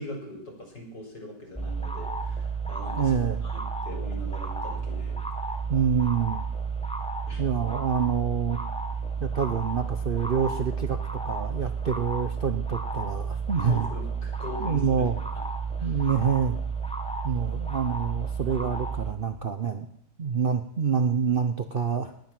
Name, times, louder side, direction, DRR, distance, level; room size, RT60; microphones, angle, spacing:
voice 1, 0.0-5.2 7.2-7.4 13.6-15.1 15.8-16.0, equal, 75° left, 0 dB, 5.2 m, -41 dB
sound 1, 1.6-19.1, right 5 dB, 5° left, 0.9 m, -32 dB
voice 2, 3.0-3.4 5.7-6.4 7.4-8.6 9.2-13.9 14.6-15.2 15.8-16.6 17.2-19.9 20.2-22.1, right 6 dB, 50° right, 7 dB, 0.6 m, -27 dB
19.5 x 9.6 x 6.0 m, 0.75 s
omnidirectional pair, 1.9 m